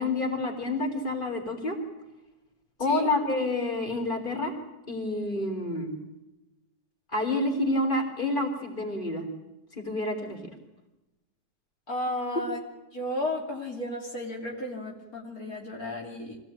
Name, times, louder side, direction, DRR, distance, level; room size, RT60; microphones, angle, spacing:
voice 1, 0.0-1.8 2.8-4.5 4.9-5.9 7.1-9.2 9.8-10.4, left 2 dB, 30° left, 3 dB, 3.8 m, -28 dB
voice 2, 11.9-12.6 12.9-16.4, left 1 dB, 60° left, -1 dB, 3.5 m, -33 dB
25.0 x 17.0 x 8.8 m, 1.0 s
omnidirectional pair, 1.7 m